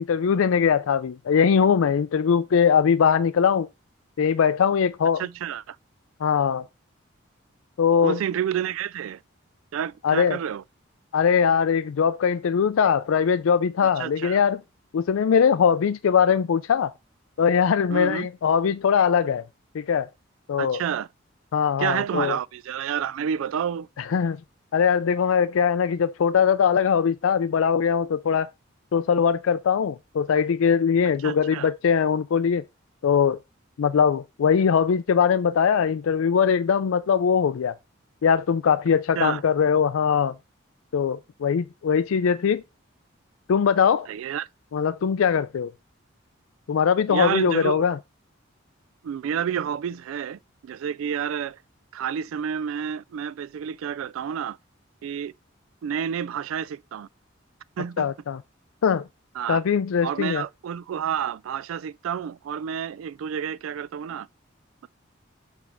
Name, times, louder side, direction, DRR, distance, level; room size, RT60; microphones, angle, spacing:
voice 1, 0.0-3.7 4.2-5.2 6.2-6.6 7.8-8.2 10.0-10.4 11.1-14.6 14.9-16.9 17.4-19.4 19.7-20.1 20.5-20.8 21.5-22.4 24.1-24.4 24.7-28.5 28.9-32.6 33.0-33.4 33.8-37.7 38.2-40.3 40.9-42.6 43.5-44.1 44.7-45.7 46.7-48.0 58.0-58.4 58.8-59.0 59.5-60.4, left 7 dB, 85° left, 0.4 m, -21 dB
voice 2, 5.2-5.8 8.0-9.2 9.7-10.6 13.8-14.4 17.9-18.3 20.6-21.1 21.8-23.9 31.2-31.7 39.2-39.4 44.1-44.5 47.1-47.9 49.0-51.6 51.9-54.6 55.0-55.3 55.8-57.1 57.8-58.1 59.3-59.6 60.0-64.3, right 8 dB, 85° right, 0.3 m, -29 dB
7.1 x 3.3 x 6.0 m
head